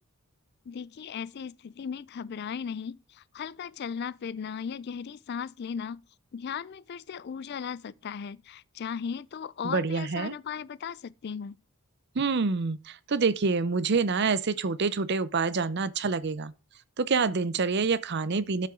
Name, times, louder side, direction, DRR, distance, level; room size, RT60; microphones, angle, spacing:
voice 1, 0.7-6.0 6.3-11.6, left 7 dB, 50° left, 0.3 m, -37 dB
voice 2, 9.6-10.3 12.2-16.5 17.0-18.7, right 4 dB, 50° right, 0.6 m, -27 dB
12.5 x 5.7 x 3.8 m
head